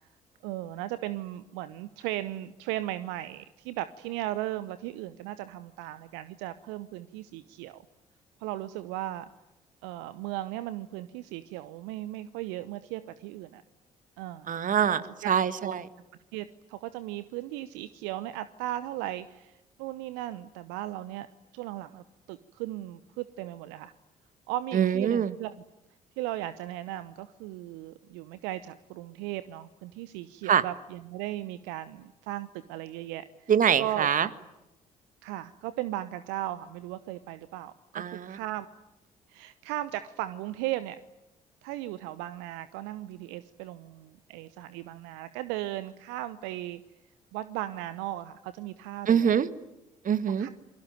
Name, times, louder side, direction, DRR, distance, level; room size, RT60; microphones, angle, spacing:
voice 1, 0.4-7.8 8.4-9.3 9.8-13.6 14.2-14.6 15.2-15.3 15.6-15.8 16.3-21.3 21.5-23.9 24.5-25.5 26.2-33.5 33.8-34.1 35.2-38.7 39.3-41.0 41.6-46.8 47.3-49.4 50.4-50.5, right 15 dB, 70° right, 14 dB, 0.9 m, -36 dB
voice 2, 14.5-15.0 15.3-15.8 24.7-25.3 30.5-30.6 33.5-34.3 37.9-38.4 49.1-49.5 50.0-50.5, right 8 dB, 45° right, 14 dB, 1.7 m, -24 dB
28.5 x 22.5 x 9.2 m, 0.98 s
figure-of-eight pair, 45°, 19 cm